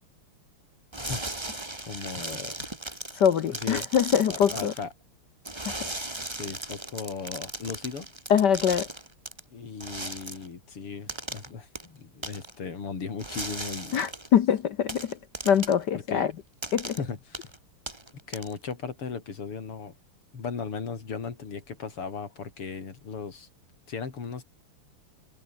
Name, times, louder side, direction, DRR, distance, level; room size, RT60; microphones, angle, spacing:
sound 1, 0.9-4.8 5.4-9.4 9.8-10.5 11.1-11.5 11.8-11.9 12.2-12.5 13.2-14.3 14.9-15.8 16.6-17.0 17.3-17.6 17.9-18.7, right 2 dB, 10° right, 2.1 m, -37 dB
voice 1, 1.8-2.7 3.5-3.9 4.3-4.9 6.3-8.1 9.5-14.0 16.1-16.3 17.0-17.5 18.3-20.0 20.3-23.5 23.9-24.4, left 5 dB, 85° left, 4.2 m, -37 dB
voice 2, 3.2-4.7 5.7-5.9 8.3-8.9 13.9-15.2 15.4-16.3 16.7-17.0, left 8 dB, 60° left, 1.4 m, -23 dB
omnidirectional pair, 2.4 m